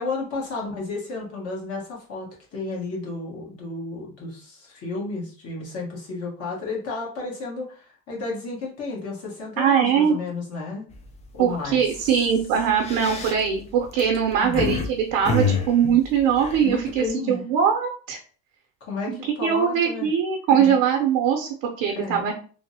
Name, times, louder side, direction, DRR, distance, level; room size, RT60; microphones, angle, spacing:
voice 1, 0.0-10.9 11.3-12.1 14.4-14.6 16.6-17.4 18.8-20.1 20.5-20.8 21.9-22.3, left 3 dB, 45° left, -3 dB, 1.2 m, -32 dB
voice 2, 9.6-10.2 11.4-18.2 19.1-19.2 19.4-22.3, right 8 dB, 85° right, 1 dB, 0.6 m, -21 dB
sound 1, 10.9-11.2 11.6-11.8 12.6-14.9 15.2-17.1, left 4 dB, 20° left, 0.3 m, -27 dB
3.2 x 2.0 x 2.7 m, 0.41 s
cardioid pair, 135°, 34 cm